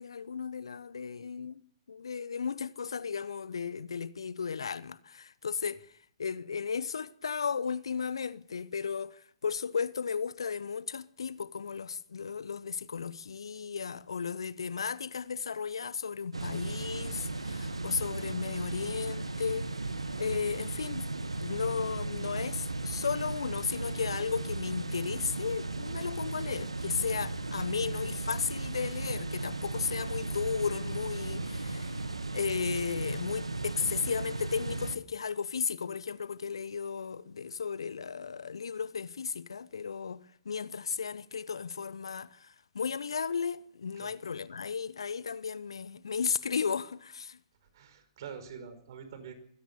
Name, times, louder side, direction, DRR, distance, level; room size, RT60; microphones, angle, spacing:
voice 1, 0.0-5.9 6.2-19.7 20.2-21.1 21.4-32.1 32.3-47.4, left 6 dB, 70° left, 0.9 m, -35 dB
sound 1, 16.3-35.0, right 2 dB, 80° right, 1.5 m, -36 dB
voice 2, 47.7-49.3, right 7 dB, 50° right, 5.2 m, -46 dB
23.0 x 16.5 x 7.0 m
figure-of-eight pair, 115°, 3 cm